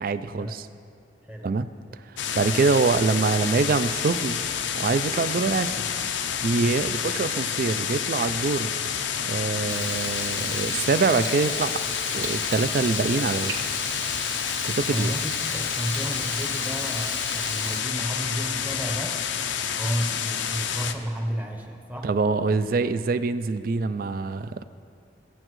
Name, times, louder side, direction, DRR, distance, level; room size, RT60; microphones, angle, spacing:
voice 1, 0.0-0.7 1.4-1.7 2.3-4.4 4.7-5.9 6.4-8.7 9.2-11.7 12.1-13.5 14.6-15.1 22.0-24.6, right 4 dB, 50° right, 13 dB, 0.3 m, -24 dB
sound 1, 2.2-20.9, left 8 dB, 85° left, 0.5 m, -29 dB
Frying (food), 9.7-17.8, right 4 dB, 75° right, 1.2 m, -37 dB
voice 2, 14.9-19.3 19.8-22.6, equal, 10° right, 3 dB, 0.8 m, -32 dB
17.5 x 8.8 x 3.1 m, 2.3 s
head